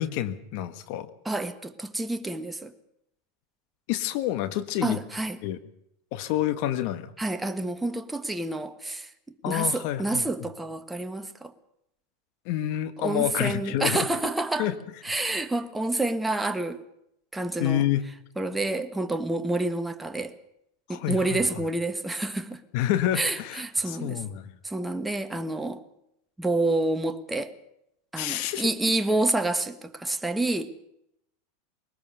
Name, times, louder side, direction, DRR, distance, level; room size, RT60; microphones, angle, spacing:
voice 1, 0.0-1.1 3.9-5.0 5.4-5.6 6.1-7.1 9.4-10.2 12.4-14.1 14.6-14.7 17.6-18.0 20.9-21.4 22.7-24.5 28.2-28.7, left 12 dB, 60° left, 1.5 m, -28 dB
voice 2, 1.2-2.7 4.8-5.4 7.2-9.1 9.5-11.5 13.0-14.7 15.0-16.8 17.3-17.9 18.4-20.3 20.9-22.6 23.1-24.2 24.6-25.8 26.4-27.5 28.1-30.7, right 2 dB, 10° right, 1.5 m, -28 dB
21.0 x 19.5 x 6.8 m
hypercardioid pair, 105°, 0 cm